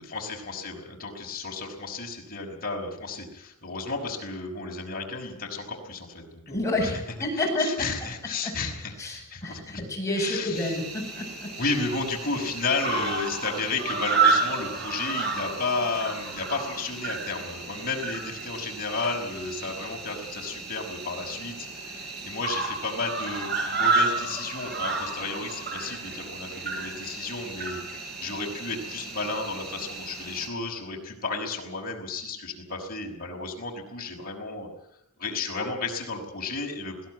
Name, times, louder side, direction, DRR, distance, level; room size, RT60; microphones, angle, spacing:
voice 1, 0.0-7.0 7.3-9.8 10.1-10.8 11.6-34.7 35.2-37.1, left 3 dB, 45° left, 1 dB, 5.5 m, -33 dB
voice 2, 6.5-7.9 8.4-8.5 9.0-11.5, left 1 dB, 15° left, -1 dB, 8.0 m, -29 dB
Cricket, 10.6-30.5, right 4 dB, 50° right, 4.8 m, -31 dB
21.5 x 17.0 x 9.5 m, 0.78 s
head